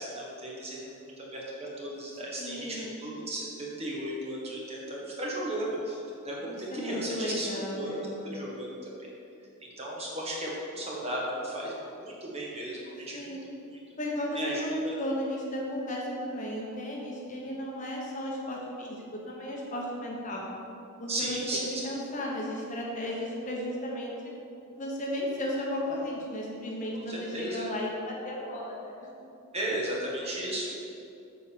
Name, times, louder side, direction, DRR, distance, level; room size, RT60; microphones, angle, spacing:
voice 1, 0.0-6.0 6.2-8.8 9.6-13.8 14.4-15.0 21.1-21.6 26.9-27.7 29.5-30.7, right 1 dB, 30° right, -4 dB, 1.7 m, -35 dB
voice 2, 2.4-2.9 6.4-8.2 13.1-13.4 14.0-20.4 21.0-24.3 24.7-28.9, left 1 dB, 35° left, -2 dB, 1.2 m, -34 dB
8.3 x 5.0 x 6.9 m, 2.7 s
head